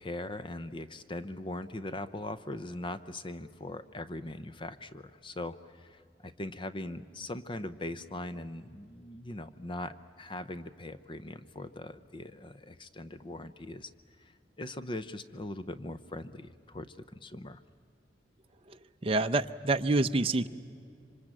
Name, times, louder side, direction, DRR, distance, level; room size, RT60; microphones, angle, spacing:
voice 1, 0.0-13.9 14.2-17.6, left 1 dB, 30° left, 13 dB, 0.6 m, -40 dB
voice 2, 18.7-20.5, right 2 dB, 30° right, 7 dB, 0.7 m, -28 dB
26.5 x 25.0 x 8.8 m, 2.3 s
head